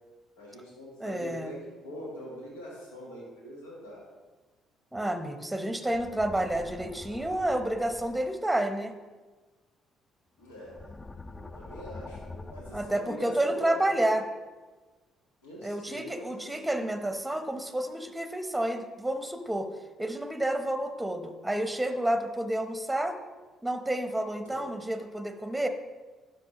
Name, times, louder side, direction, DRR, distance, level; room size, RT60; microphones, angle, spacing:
voice 1, 0.4-1.5 1.8-4.0 10.4-10.9 11.3-13.9 15.4-16.7 24.4-24.7, equal, 85° left, -4 dB, 1.6 m, -43 dB
voice 2, 1.0-1.5 4.9-8.9 12.7-14.3 15.6-19.7 20.0-23.2 23.6-25.7, right 1 dB, 5° right, 7 dB, 0.9 m, -30 dB
sound 1, 5.9-8.4 10.4-12.9, left 3 dB, 25° left, 0.4 m, -45 dB
11.5 x 5.0 x 3.0 m, 1.3 s
hypercardioid pair, 50°, 0 cm